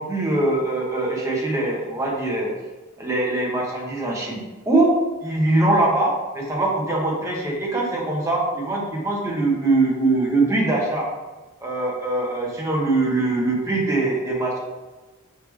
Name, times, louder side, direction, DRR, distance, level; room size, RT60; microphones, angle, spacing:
voice 1, 0.0-2.5 3.0-4.4 4.7-4.9 5.2-11.1 11.6-14.6, right 2 dB, 15° right, -3 dB, 0.9 m, -22 dB
4.7 x 3.5 x 3.1 m, 1.2 s
head